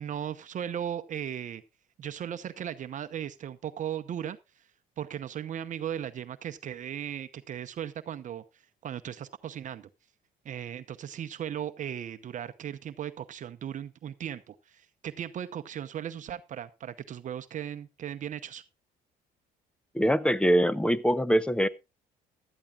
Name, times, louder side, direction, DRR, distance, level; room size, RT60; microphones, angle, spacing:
voice 1, 0.0-1.6 2.0-4.7 5.0-9.9 10.4-18.6, right 9 dB, 50° right, 0.8 m, -37 dB
voice 2, 19.9-21.7, equal, 5° left, 0.7 m, -23 dB
16.0 x 12.0 x 2.4 m
cardioid pair, 110°, 17 cm